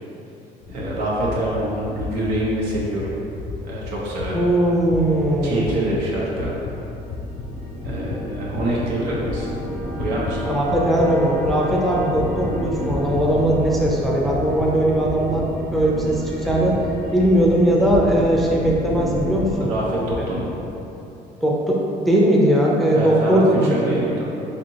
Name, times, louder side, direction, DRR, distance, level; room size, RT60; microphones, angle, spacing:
sound 1, 0.6-20.5, left 3 dB, 70° left, 0.5 m, -34 dB
voice 1, 0.7-3.1 3.6-4.4 5.4-6.5 7.8-9.5 9.9-10.5 19.6-20.5 22.9-24.3, right 1 dB, 90° right, -5 dB, 0.8 m, -25 dB
voice 2, 4.3-5.6 10.4-16.8 17.1-19.5 21.4-21.8 22.1-24.0, right 1 dB, ahead, -4 dB, 0.5 m, -19 dB
sound 2, 6.6-19.6, equal, 65° right, 1.0 m, -32 dB
4.2 x 2.8 x 2.8 m, 2.9 s
cardioid pair, 110°, 17 cm